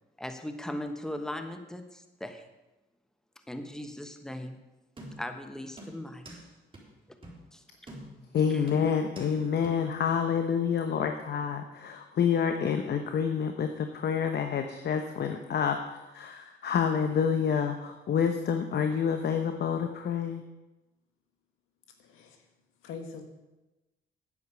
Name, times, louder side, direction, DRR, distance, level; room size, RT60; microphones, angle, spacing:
voice 1, 0.2-2.4 3.5-4.6 5.2-6.3 7.5-7.6 8.5-8.7, left 1 dB, 5° left, 7 dB, 1.2 m, -38 dB
sound 1, 5.0-5.4 5.8-6.5 6.7-6.8 7.2-7.4 7.9-8.3 8.7-9.4 9.6-9.7, right 1 dB, 25° right, 3.9 m, -46 dB
voice 2, 8.3-20.4, left 7 dB, 55° left, 6 dB, 1.0 m, -28 dB
voice 3, 21.9-22.5 22.8-23.2, left 5 dB, 90° left, 5 dB, 1.8 m, -43 dB
10.0 x 9.1 x 7.1 m, 1.0 s
cardioid pair, 90°, 20 cm